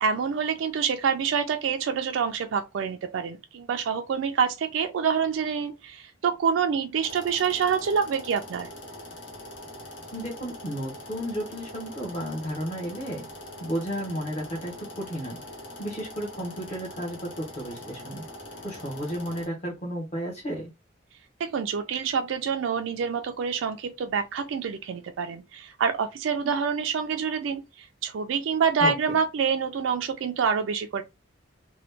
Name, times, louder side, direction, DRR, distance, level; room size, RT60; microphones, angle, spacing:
voice 1, 0.0-8.7 21.4-31.0, right 6 dB, 70° right, 0.3 m, -27 dB
sound 1, 7.0-19.5, left 1 dB, 70° left, 1.1 m, -43 dB
voice 2, 10.1-13.3 13.6-15.4 15.8-18.2 18.6-20.7 28.8-28.9, equal, 35° left, 0.9 m, -33 dB
2.9 x 2.2 x 3.2 m
head